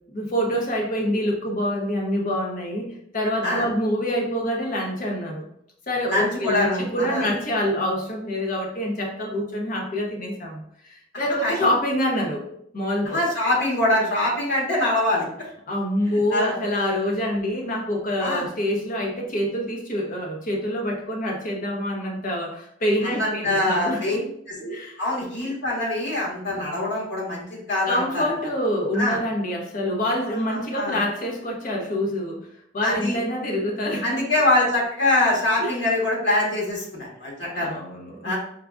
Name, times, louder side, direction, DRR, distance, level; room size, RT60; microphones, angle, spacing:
voice 1, 0.1-2.9 3.1-5.5 5.9-12.4 12.7-13.2 15.7-24.2 24.6-25.0 27.9-32.4 32.7-34.2 35.6-35.7 37.5-38.4, equal, 45° left, 0 dB, 0.8 m, -26 dB
voice 2, 6.1-7.3 11.4-11.7 13.0-15.2 16.3-16.5 18.2-18.5 23.0-24.2 24.5-24.6 25.0-28.2 28.9-29.2 30.5-31.0 32.8-33.2 34.0-37.8 38.2-38.4, left 1 dB, 65° left, -4 dB, 1.4 m, -24 dB
4.8 x 2.3 x 2.4 m, 0.70 s
head